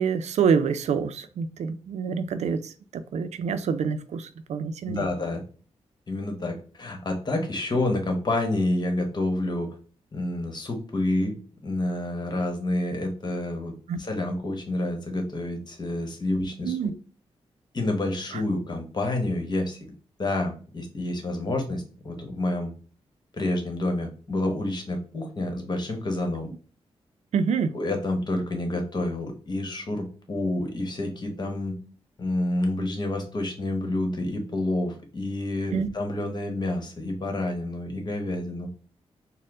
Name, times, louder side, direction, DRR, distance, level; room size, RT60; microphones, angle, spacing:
voice 1, 0.0-5.0 13.9-14.0 16.6-16.9 18.3-18.4 27.3-27.7 35.7-35.9, right 6 dB, 85° right, 0.4 m, -26 dB
voice 2, 4.9-5.4 6.1-9.7 10.1-11.4 11.6-13.7 14.0-16.8 17.7-19.9 20.2-22.7 23.3-26.5 27.7-31.8 32.2-38.7, left 2 dB, 40° left, 1.2 m, -28 dB
4.3 x 2.1 x 3.7 m
cardioid pair, 95°, 11 cm